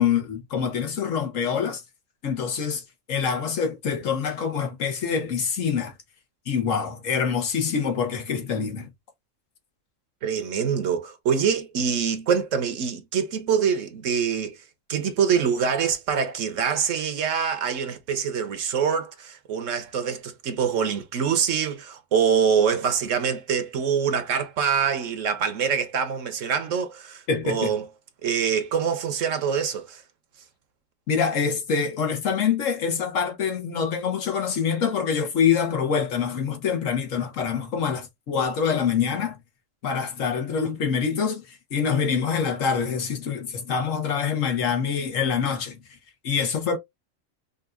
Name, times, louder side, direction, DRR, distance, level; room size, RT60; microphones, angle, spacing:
voice 1, 0.0-1.8 2.2-2.8 3.1-5.9 6.5-8.9 27.3-27.7 31.1-39.4 39.8-41.4 41.7-45.7 46.2-46.8, left 6 dB, 75° left, 1.4 m, -25 dB
voice 2, 10.2-14.6 14.9-27.8 28.2-30.0, right 7 dB, 75° right, 1.2 m, -25 dB
5.3 x 2.6 x 2.4 m
omnidirectional pair, 1.4 m